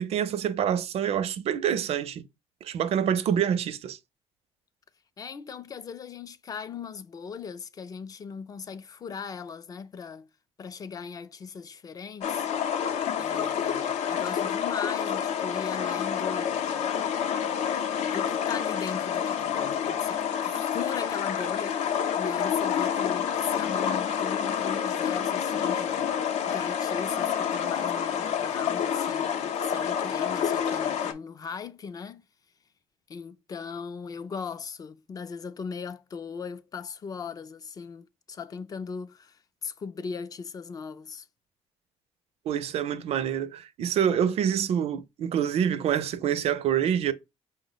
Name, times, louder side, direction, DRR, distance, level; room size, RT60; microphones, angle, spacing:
voice 1, 0.0-2.3 2.6-4.0 42.5-47.1, right 9 dB, 60° right, 0.4 m, -26 dB
voice 2, 5.2-10.3 10.6-12.5 13.2-16.9 18.0-26.2 26.5-32.2 33.1-41.3, left 5 dB, 30° left, 0.3 m, -38 dB
sound 1, 12.2-31.1, left 8 dB, 75° left, 0.6 m, -28 dB
5.3 x 2.1 x 3.8 m
cardioid pair, 145°, 12 cm